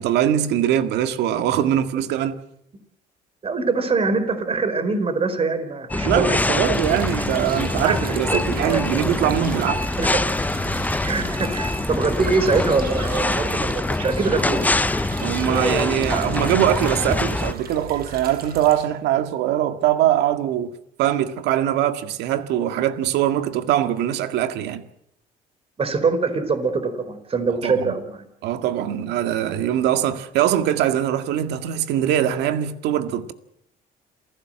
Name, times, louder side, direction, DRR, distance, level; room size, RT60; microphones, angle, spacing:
voice 1, 0.0-2.4 6.0-9.9 15.2-20.7 21.0-24.8 27.6-27.9 28.4-33.3, right 11 dB, 85° right, 2.0 m, -22 dB
voice 2, 3.4-6.7 7.2-7.3 7.8-8.0 8.3-8.8 10.0-10.2 11.0-14.8 25.8-28.2, right 4 dB, 35° right, 4.5 m, -23 dB
sound 1, 5.9-17.5, left 2 dB, 10° left, 0.8 m, -24 dB
sound 2, 6.4-18.9, right 6 dB, 65° right, 5.5 m, -37 dB
28.0 x 15.5 x 7.7 m
cardioid pair, 110°, 17 cm